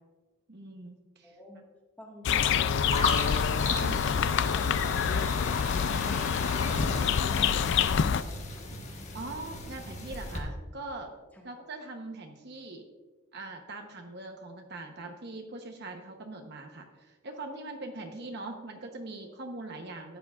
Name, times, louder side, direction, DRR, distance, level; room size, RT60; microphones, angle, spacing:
voice 1, 0.5-1.4 3.7-4.0 9.1-11.1 11.4-12.9 13.3-20.2, right 2 dB, 50° right, 3 dB, 0.9 m, -42 dB
voice 2, 1.2-1.6 2.0-2.8 3.7-5.6 5.9-6.8 7.1-8.7 11.3-11.5, equal, 10° left, -1 dB, 1.5 m, -49 dB
Słowik i wilga, 2.3-8.2, left 7 dB, 55° left, 0.3 m, -26 dB
sound 1, 2.9-10.4, left 3 dB, 30° left, 1.1 m, -35 dB
13.5 x 9.0 x 2.4 m, 1.3 s
head